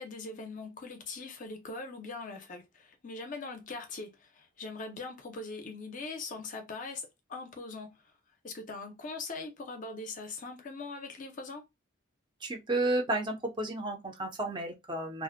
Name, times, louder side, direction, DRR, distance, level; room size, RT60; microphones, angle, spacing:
voice 1, 0.0-8.1 8.4-11.6, left 3 dB, 40° left, 0.5 m, -41 dB
voice 2, 12.4-15.2, right 2 dB, 20° right, 0.5 m, -32 dB
2.4 x 2.1 x 2.5 m
head